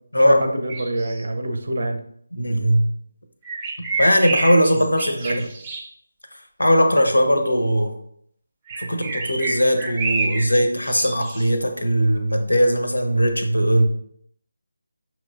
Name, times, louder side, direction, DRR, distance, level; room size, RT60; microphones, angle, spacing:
voice 1, 0.2-2.0 4.7-4.8 5.1-5.5, right 1 dB, 60° right, 5 dB, 0.7 m, -25 dB
sound 1, 0.7-1.2 3.4-5.9 8.7-10.5 10.8-11.5, right 3 dB, 20° right, 0.6 m, -28 dB
voice 2, 2.3-2.9 4.0-5.4 6.6-8.0 8.8-13.9, equal, 80° left, 6 dB, 0.8 m, -19 dB
5.7 x 3.0 x 2.5 m, 0.67 s
figure-of-eight pair, 155°, 0 cm